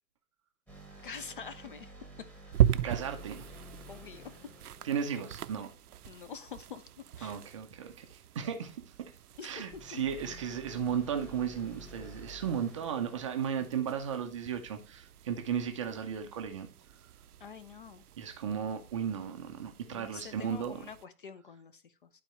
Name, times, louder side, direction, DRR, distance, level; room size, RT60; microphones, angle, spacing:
sound 1, 0.7-6.1 9.6-14.4, right 1 dB, 5° left, 1.3 m, -51 dB
voice 1, 1.0-1.9 3.9-4.3 6.1-6.8 7.2-7.4 9.4-9.6 9.9-10.0 17.4-18.0 19.9-22.1, left 6 dB, 40° left, 0.4 m, -46 dB
sound 2, 2.5-21.1, right 10 dB, 75° right, 0.5 m, -38 dB
voice 2, 2.8-3.5 4.8-5.7 7.2-8.8 9.4-16.7 18.2-20.8, right 8 dB, 20° right, 0.4 m, -35 dB
11.5 x 4.1 x 3.1 m
figure-of-eight pair, 115°, 45 cm